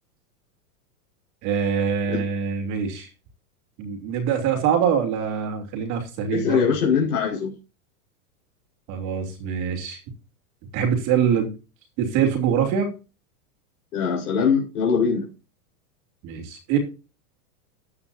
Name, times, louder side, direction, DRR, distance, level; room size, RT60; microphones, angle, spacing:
voice 1, 1.4-3.1 3.8-6.6 8.9-10.0 10.7-11.5 12.0-12.9 16.2-16.8, right 7 dB, 40° right, 5 dB, 2.9 m, -24 dB
voice 2, 6.3-7.5 13.9-15.3, left 6 dB, 90° left, -2 dB, 5.4 m, -22 dB
14.0 x 9.5 x 2.6 m, 0.31 s
supercardioid pair, 155°, 44 cm